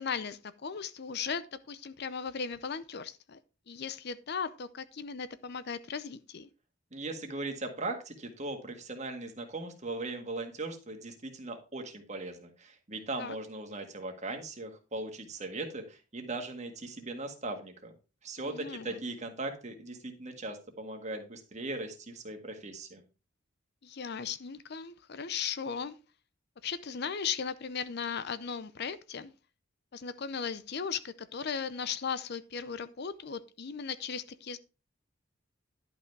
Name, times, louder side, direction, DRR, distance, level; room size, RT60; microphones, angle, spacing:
voice 1, 0.0-3.4 3.7-6.5 13.2-13.4 18.4-19.0 23.8-26.0 26.6-29.3 29.9-34.6, left 6 dB, 50° left, 0.5 m, -37 dB
voice 2, 6.9-17.9 18.2-23.0, right 2 dB, 35° right, 1.7 m, -39 dB
11.0 x 5.5 x 4.6 m
head